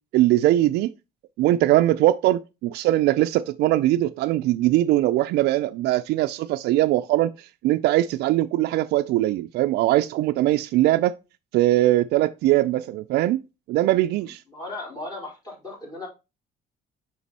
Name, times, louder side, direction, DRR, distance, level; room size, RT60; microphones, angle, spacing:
voice 1, 0.1-0.9 1.4-11.1 11.5-13.4 13.7-14.4, right 15 dB, 75° right, 0.4 m, -21 dB
voice 2, 14.2-16.1, left 2 dB, 25° left, 4.2 m, -37 dB
6.0 x 4.0 x 4.1 m
cardioid pair, 110°, 17 cm